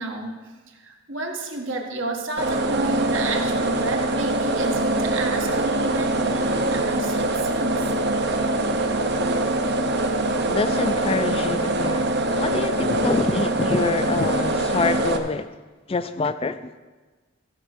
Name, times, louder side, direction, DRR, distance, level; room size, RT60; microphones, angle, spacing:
voice 1, 0.0-7.9, right 2 dB, 70° right, 1.7 m, -30 dB
sound 1, 2.4-15.2, right 2 dB, 50° right, 0.9 m, -23 dB
voice 2, 10.5-15.5 15.9-16.7, left 3 dB, 25° left, 0.3 m, -26 dB
15.5 x 5.5 x 6.2 m
head